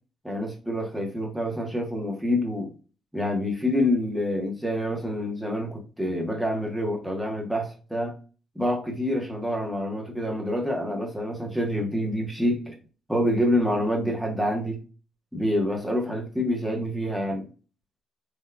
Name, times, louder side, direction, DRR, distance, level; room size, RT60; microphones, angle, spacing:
voice 1, 0.2-2.7 3.1-8.1 8.5-12.7 13.1-14.8 15.3-17.5, left 1 dB, 5° right, 1.1 m, -27 dB
3.6 x 3.0 x 2.2 m
cardioid pair, 90°, 0 cm